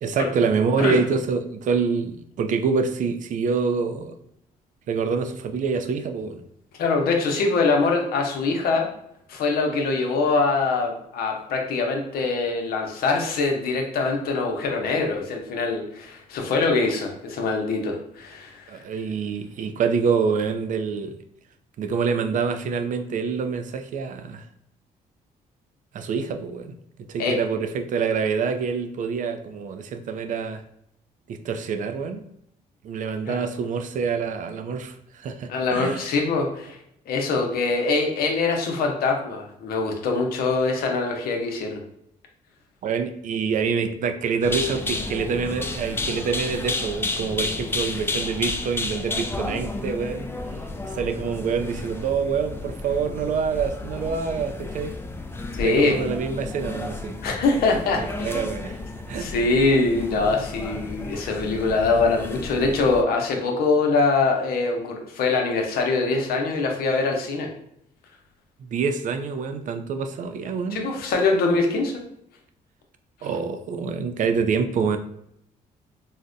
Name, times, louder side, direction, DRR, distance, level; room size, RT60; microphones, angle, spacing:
voice 1, 0.0-4.1 4.9-6.4 18.7-21.2 21.8-24.4 25.9-26.7 27.1-30.6 31.3-32.3 32.8-36.1 42.8-50.3 50.8-54.9 55.6-57.2 57.9-58.8 59.1-59.3 68.6-70.9 73.2-75.0, right 5 dB, 55° right, 8 dB, 0.4 m, -26 dB
voice 2, 6.8-8.9 9.3-18.7 27.2-27.4 33.3-33.4 35.5-36.8 37.1-41.8 55.6-56.0 57.2-58.4 59.1-67.5 70.7-72.0, left 3 dB, 75° left, 2 dB, 0.7 m, -23 dB
sound 1, 44.4-63.0, left 2 dB, 15° left, 0.4 m, -32 dB
3.9 x 2.1 x 2.5 m, 0.75 s
cardioid pair, 80°, 16 cm